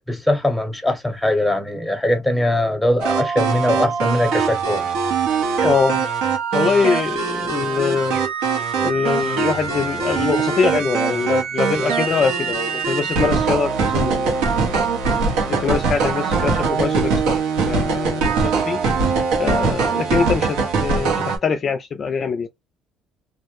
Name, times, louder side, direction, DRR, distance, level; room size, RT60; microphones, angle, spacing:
voice 1, 0.1-4.8, left 1 dB, 5° left, 0.8 m, -21 dB
sound 1, 3.0-21.4, right 5 dB, 85° right, 0.9 m, -21 dB
voice 2, 5.6-6.0 6.5-8.2 8.8-14.8 15.3-17.4 17.7-18.8 19.4-22.5, left 5 dB, 40° left, 0.3 m, -23 dB
2.2 x 2.0 x 2.9 m
cardioid pair, 95°, 0 cm